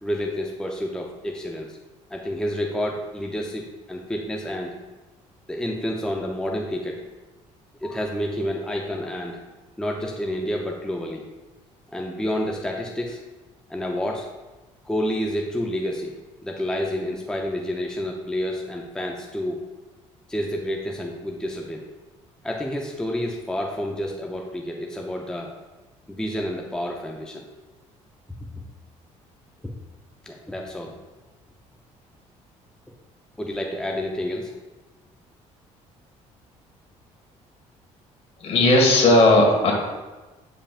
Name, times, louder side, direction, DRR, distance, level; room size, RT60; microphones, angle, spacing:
voice 1, 0.0-1.8 2.1-4.7 5.5-7.0 7.8-9.4 9.8-11.2 11.9-13.2 13.7-14.3 14.8-16.1 16.4-19.6 20.3-21.9 22.4-25.5 26.1-27.4 29.6-29.7 30.2-31.0 33.4-34.6, equal, 5° left, 0 dB, 0.6 m, -29 dB
voice 2, 38.4-39.7, left 1 dB, 50° left, 0 dB, 1.8 m, -16 dB
8.4 x 5.5 x 2.5 m, 1.2 s
cardioid pair, 105°, 13 cm